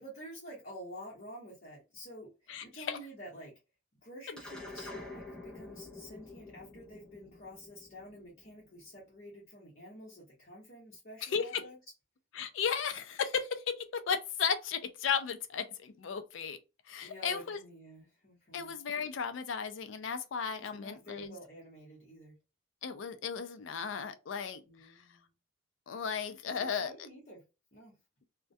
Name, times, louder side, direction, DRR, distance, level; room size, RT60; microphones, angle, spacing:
voice 1, 0.0-3.5 4.0-11.8 17.0-18.7 20.6-22.4 24.7-25.3 26.4-27.4 27.7-28.0, equal, 50° left, 1.0 m, -49 dB
voice 2, 2.5-3.0 11.2-11.6 12.3-16.6 16.9-17.6 18.5-21.3 22.8-24.6 25.9-26.9, left 6 dB, 65° left, 0.4 m, -35 dB
sound 1, 4.4-9.0, left 2 dB, 5° left, 0.6 m, -48 dB
2.2 x 2.1 x 2.6 m
head